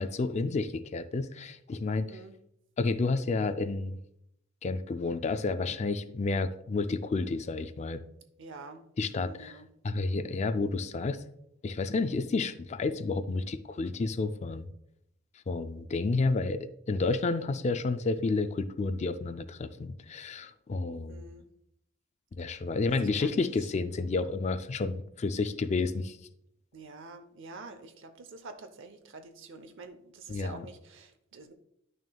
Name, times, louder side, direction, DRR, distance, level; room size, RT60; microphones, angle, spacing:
voice 1, 0.0-2.1 2.8-4.0 4.6-8.0 9.0-9.6 9.8-11.2 11.6-14.6 15.5-21.2 22.3-26.2 30.3-30.7, left 3 dB, 35° left, 11 dB, 0.4 m, -30 dB
voice 2, 8.4-9.7 21.1-21.4 22.5-22.6 23.0-23.5 26.7-31.5, right 3 dB, 65° right, 9 dB, 0.7 m, -47 dB
10.5 x 6.1 x 2.3 m, 0.77 s
head